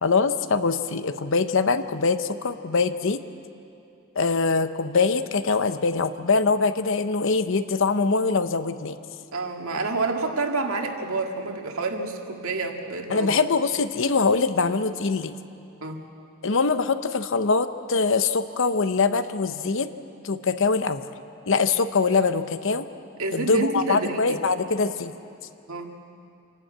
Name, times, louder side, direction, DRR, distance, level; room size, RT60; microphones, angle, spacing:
voice 1, 0.0-3.2 4.2-9.0 13.1-15.3 16.4-19.9 20.2-21.0 21.5-22.9 23.3-25.1, left 4 dB, 60° left, 11 dB, 0.8 m, -23 dB
voice 2, 9.3-13.3 15.8-16.0 23.2-24.4 25.7-26.0, right 3 dB, 75° right, 3 dB, 1.9 m, -28 dB
27.0 x 12.0 x 8.8 m, 2.6 s
head